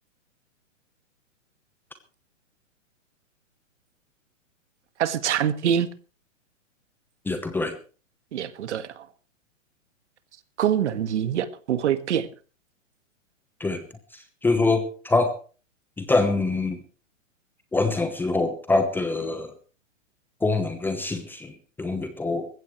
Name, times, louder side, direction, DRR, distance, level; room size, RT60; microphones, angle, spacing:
voice 1, 5.0-5.9 8.3-9.1 10.6-12.3, right 9 dB, 60° right, 1.8 m, -25 dB
voice 2, 7.2-7.7 13.6-13.8 14.1-15.4 16.0-16.8 17.7-19.5 20.4-22.5, left 3 dB, 5° left, 1.0 m, -25 dB
20.5 x 15.5 x 3.2 m
hypercardioid pair, 140°, 39 cm